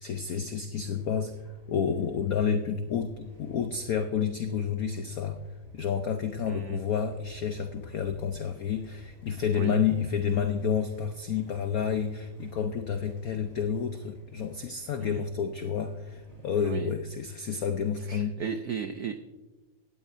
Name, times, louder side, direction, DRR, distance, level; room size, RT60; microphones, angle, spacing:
voice 1, 0.0-1.3 1.7-5.4 5.7-18.3, left 7 dB, 85° left, 7 dB, 0.7 m, -30 dB
sound 1, 0.8-17.9, right 1 dB, 25° right, 3.9 m, -53 dB
voice 2, 6.5-6.8 9.5-9.8 15.0-15.2 16.6-16.9 18.1-19.2, right 7 dB, 90° right, 8 dB, 0.8 m, -35 dB
17.5 x 13.0 x 2.6 m, 1.1 s
omnidirectional pair, 2.4 m